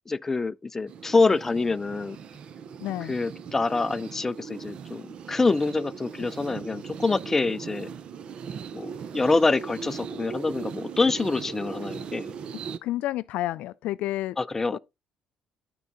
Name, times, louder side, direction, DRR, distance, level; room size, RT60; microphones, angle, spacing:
voice 1, 0.1-2.2 3.1-7.9 8.7-12.3 14.4-14.8, left 3 dB, 15° left, 0.4 m, -26 dB
sound 1, 0.9-12.8, right 6 dB, 50° right, 0.6 m, -39 dB
voice 2, 2.8-3.1 12.8-14.4 14.7-14.8, left 15 dB, 80° left, 0.4 m, -30 dB
12.0 x 4.7 x 4.0 m
cardioid pair, 145°, 2 cm